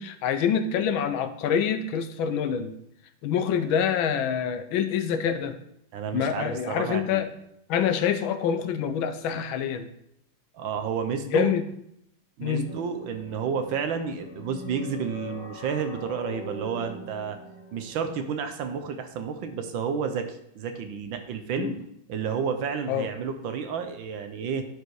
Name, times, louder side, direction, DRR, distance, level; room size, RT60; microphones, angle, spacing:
voice 1, 0.0-2.7 3.2-5.6 6.1-7.3 7.7-9.9 11.3-11.6 12.4-12.7 21.6-21.7 22.9-23.1, left 8 dB, 80° left, 10 dB, 1.5 m, -26 dB
voice 2, 5.9-7.2 10.5-11.5 12.4-17.4 17.7-21.8 22.1-24.7, right 6 dB, 75° right, 7 dB, 1.5 m, -31 dB
sound 1, 12.7-18.1, left 2 dB, 40° left, 3.0 m, -42 dB
10.0 x 4.9 x 4.7 m, 0.75 s
omnidirectional pair, 2.2 m